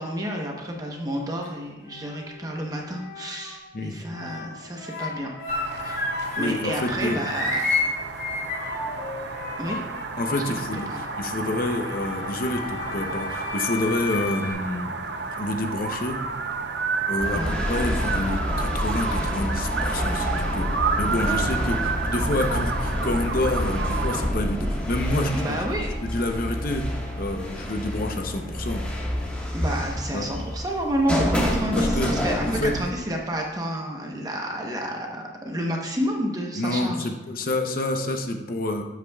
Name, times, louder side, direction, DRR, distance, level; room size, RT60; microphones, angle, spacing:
voice 1, 0.0-5.3 5.8-6.0 6.4-7.6 9.6-9.8 10.9-11.0 17.3-17.6 21.3-21.4 25.3-25.9 29.5-37.1, equal, 20° right, 0 dB, 0.9 m, -30 dB
sound 1, 0.9-1.5 1.9-3.7 4.0-6.6 6.8-14.5, left 3 dB, 65° left, 3.1 m, -32 dB
sound 2, 5.5-24.3, right 4 dB, 60° right, 0.6 m, -31 dB
voice 2, 6.4-7.2 10.2-15.1 15.4-16.2 17.1-20.7 21.0-25.6 26.0-28.8 30.1-30.3 31.8-32.1 32.4-32.7 36.6-38.8, left 1 dB, 45° left, 4 dB, 0.7 m, -28 dB
sound 3, 17.2-32.8, equal, 5° left, 1.4 m, -28 dB
12.5 x 8.3 x 2.3 m, 1.2 s
head